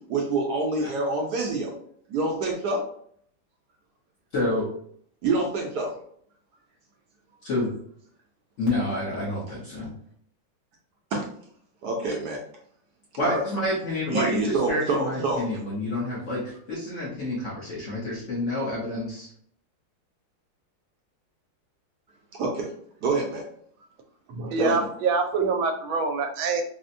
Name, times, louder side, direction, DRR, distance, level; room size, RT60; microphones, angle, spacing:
voice 1, 0.1-1.7 2.1-2.8 5.2-6.0 11.1-11.3 11.8-12.4 13.2-13.4 14.1-15.5 22.3-22.7 23.0-23.5 24.6-24.9, right 3 dB, 70° right, 0 dB, 1.0 m, -26 dB
voice 2, 4.3-4.7 7.4-7.7 8.6-9.9 13.2-19.3, left 1 dB, 55° left, -5 dB, 0.9 m, -28 dB
voice 3, 24.3-26.6, right 4 dB, 90° right, 4 dB, 1.4 m, -25 dB
4.1 x 2.1 x 2.5 m, 0.63 s
omnidirectional pair, 2.1 m